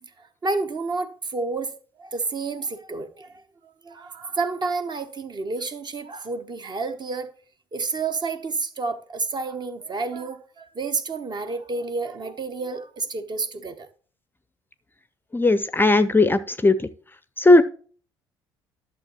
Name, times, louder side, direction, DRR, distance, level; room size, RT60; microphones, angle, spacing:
voice 1, 0.0-7.3 7.7-13.9, right 3 dB, 35° right, 1.0 m, -30 dB
voice 2, 15.3-16.8 17.4-17.6, left 2 dB, 15° left, 0.5 m, -17 dB
11.5 x 6.6 x 3.0 m
figure-of-eight pair, 50°, 13 cm